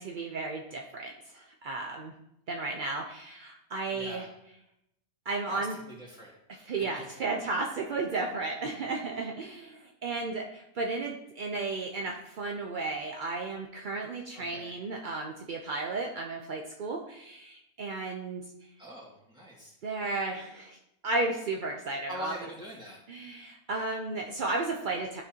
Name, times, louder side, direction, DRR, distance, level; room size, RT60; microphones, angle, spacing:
voice 1, 0.0-2.1 2.5-4.3 5.3-5.8 6.5-18.4 19.8-20.8 21.0-22.3 23.1-25.2, right 3 dB, 65° right, 1 dB, 0.5 m, -34 dB
voice 2, 3.9-4.3 5.5-6.3 6.9-7.1 14.4-14.7 18.8-19.7 22.1-23.0, equal, 5° right, -5 dB, 1.8 m, -43 dB
12.0 x 4.2 x 2.8 m, 0.83 s
omnidirectional pair, 1.6 m